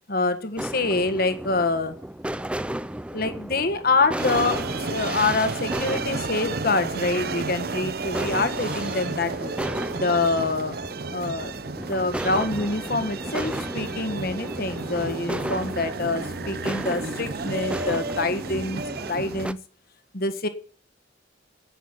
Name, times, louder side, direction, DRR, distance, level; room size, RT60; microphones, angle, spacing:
voice 1, 0.1-2.0 3.1-9.6 9.9-10.8 11.1-11.5 11.9-18.8 19.1-19.6 20.1-20.5, left 3 dB, 55° left, 10 dB, 1.6 m, -26 dB
sound 1, 0.6-19.5, right 1 dB, 5° right, 0.5 m, -34 dB
sound 2, 4.2-19.5, right 3 dB, 55° right, 0.8 m, -32 dB
10.0 x 8.6 x 10.0 m, 0.41 s
head